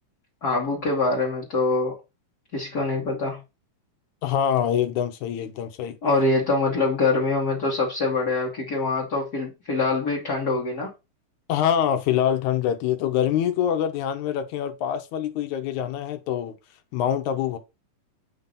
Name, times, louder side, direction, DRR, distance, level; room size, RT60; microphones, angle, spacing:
voice 1, 0.4-2.0 2.5-3.4 6.0-10.9, left 3 dB, 40° left, 1.4 m, -24 dB
voice 2, 4.2-6.0 11.5-16.5 16.9-17.6, left 9 dB, 75° left, 2.1 m, -25 dB
8.1 x 2.8 x 5.2 m
omnidirectional pair, 3.7 m